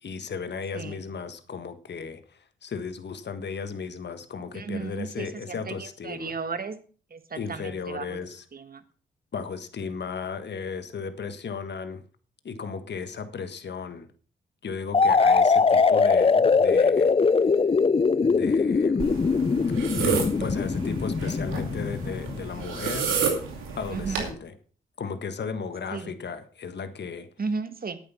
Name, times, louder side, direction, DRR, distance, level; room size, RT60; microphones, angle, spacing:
voice 1, 0.0-6.3 7.3-8.4 9.3-12.0 12.4-14.1 14.6-17.1 18.2-19.1 19.8-23.2 23.7-24.5 25.0-27.3, left 5 dB, 60° left, 10 dB, 1.5 m, -35 dB
voice 2, 4.5-6.8 7.1-8.1 8.5-8.8 23.9-24.2 25.9-26.1 27.4-28.0, right 4 dB, 45° right, 10 dB, 1.7 m, -34 dB
sound 1, 14.9-22.6, left 4 dB, 30° left, 0.6 m, -21 dB
sound 2, 19.0-24.3, right 6 dB, 85° right, 2.5 m, -31 dB
10.5 x 8.9 x 5.7 m, 0.40 s
supercardioid pair, 45°, 20 cm